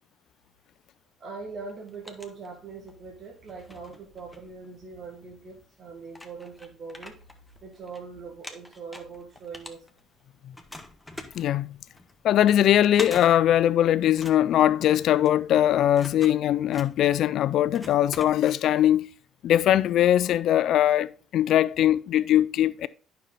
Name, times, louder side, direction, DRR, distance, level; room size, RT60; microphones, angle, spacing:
voice 1, 1.2-7.1 7.6-9.8, right 4 dB, 55° right, 1.9 m, -41 dB
sound 1, 1.7-3.0 3.4-5.1 5.7-5.8 6.1-8.0 8.3-10.2 10.5-18.8, left 1 dB, 10° left, 1.4 m, -44 dB
voice 2, 11.3-11.7 12.2-19.1 19.4-22.9, left 11 dB, 65° left, 0.4 m, -21 dB
9.1 x 5.8 x 4.0 m
hypercardioid pair, 60°, 0 cm